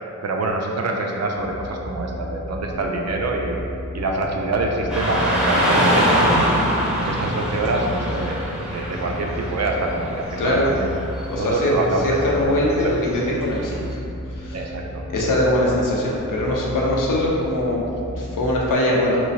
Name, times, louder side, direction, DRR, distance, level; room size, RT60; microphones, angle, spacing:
voice 1, 0.2-3.6 3.9-6.5 7.0-10.9 11.4-12.5 12.8-13.0 14.5-15.0, right 2 dB, 55° right, 1 dB, 0.4 m, -25 dB
sound 1, 1.3-18.7, left 1 dB, 40° left, 0.5 m, -34 dB
Car passing by / Traffic noise roadway noise, 4.9-13.9, equal, 5° right, 0.6 m, -24 dB
voice 2, 10.4-10.7 11.3-11.7 12.0-13.8 14.3-14.6 15.1-17.8 18.2-19.2, left 1 dB, 80° left, -3 dB, 0.6 m, -21 dB
3.2 x 3.0 x 2.7 m, 2.7 s
wide cardioid pair, 100°, 31 cm